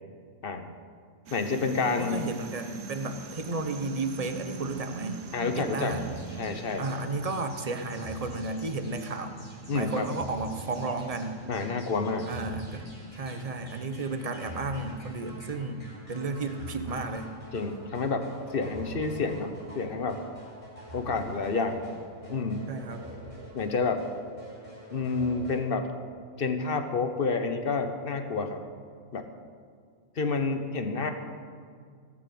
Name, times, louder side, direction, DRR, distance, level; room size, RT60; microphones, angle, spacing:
voice 1, 1.3-2.3 5.3-6.0 6.4-6.9 9.7-10.1 11.5-12.6 17.5-18.3 18.5-20.2 20.9-21.8 22.3-22.6 23.5-24.0 24.9-25.9 26.4-28.6 29.1-29.2 30.2-31.1, left 4 dB, 50° left, 7 dB, 1.1 m, -29 dB
sound 1, 1.3-19.7, right 4 dB, 75° right, 1.3 m, -45 dB
voice 2, 1.9-5.2 5.5-6.0 6.8-9.3 9.7-11.4 12.3-12.9 13.1-17.3 22.7-23.1, right 3 dB, 30° right, 7 dB, 0.9 m, -33 dB
sound 2, 5.8-25.6, right 1 dB, 25° left, 3.9 m, -45 dB
17.5 x 6.2 x 7.7 m, 2.1 s
omnidirectional pair, 1.3 m